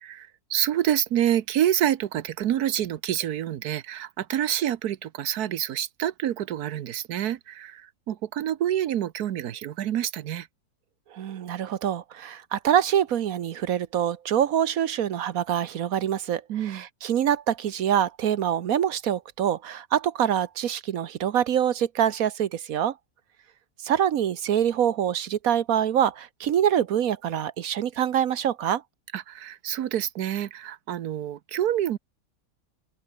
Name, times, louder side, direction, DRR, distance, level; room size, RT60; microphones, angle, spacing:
voice 1, 0.0-10.5 16.5-16.8 29.1-32.0, right 11 dB, 90° right, 1.4 m, -27 dB
voice 2, 11.1-22.9 23.8-28.8, right 9 dB, 70° right, 1.3 m, -25 dB
open air
omnidirectional pair, 1.6 m